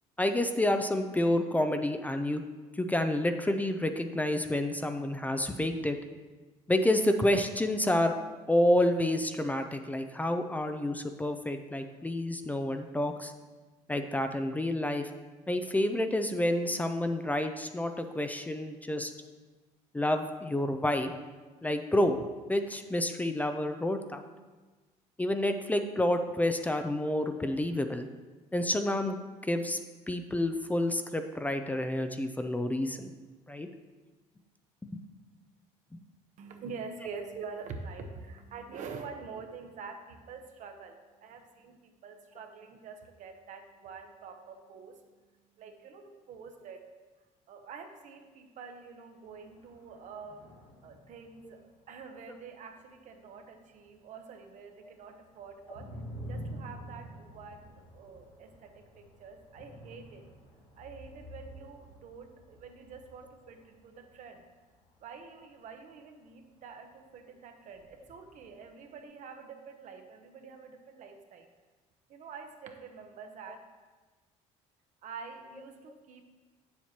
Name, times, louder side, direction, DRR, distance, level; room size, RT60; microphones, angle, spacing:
voice 1, 0.2-2.4 2.8-6.0 6.7-8.1 8.5-13.3 13.9-15.1 15.5-19.1 19.9-21.1 21.6-22.2 22.5-24.2 25.2-28.1 28.5-29.2 29.5-29.8 30.1-33.1 33.5-33.7 34.9-35.0 35.9-36.0, left 1 dB, 10° left, 7 dB, 0.4 m, -29 dB
voice 2, 36.4-46.9 47.5-50.5 50.8-55.9 56.3-60.3 60.8-64.4 65.0-71.5 72.1-73.6 75.0-76.2, right 5 dB, 60° right, 5 dB, 0.9 m, -46 dB
sound 1, 49.2-54.2 54.5-67.2 67.6-69.0, equal, 80° left, 2.3 m, -49 dB
8.0 x 7.3 x 2.9 m, 1.3 s
cardioid pair, 105°, 14 cm